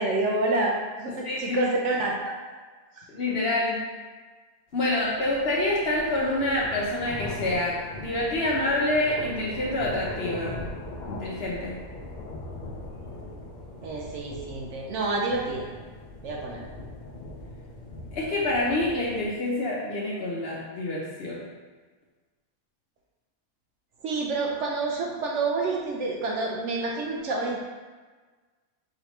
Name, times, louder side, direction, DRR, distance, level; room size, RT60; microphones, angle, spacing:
voice 1, 0.0-2.3 3.0-3.1 4.8-5.3 13.8-15.7 16.2-16.6 24.0-27.6, right 3 dB, 65° right, -1 dB, 0.8 m, -28 dB
voice 2, 1.2-1.6 3.1-3.8 4.7-10.7 11.1-11.8 18.1-21.4, left 1 dB, 55° left, -4 dB, 0.8 m, -27 dB
sound 1, 4.8-19.3, left 2 dB, 80° left, 0.4 m, -40 dB
4.7 x 3.2 x 3.0 m, 1.4 s
omnidirectional pair, 1.5 m